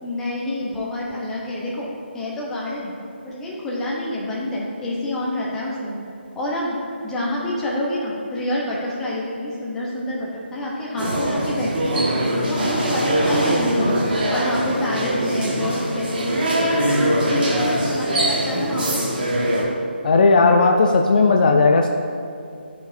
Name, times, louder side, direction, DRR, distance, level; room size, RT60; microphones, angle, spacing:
voice 1, 0.0-1.9 2.1-2.9 3.2-6.0 6.3-6.8 7.0-12.1 12.5-14.0 14.3-16.2 16.6-19.0, left 1 dB, 5° left, -5 dB, 0.8 m, -27 dB
sound 1, 11.0-19.6, right 1 dB, 55° right, 1.4 m, -22 dB
voice 2, 20.0-21.9, left 3 dB, 45° left, 4 dB, 0.4 m, -15 dB
10.5 x 5.1 x 2.6 m, 2.5 s
figure-of-eight pair, 155°, 6 cm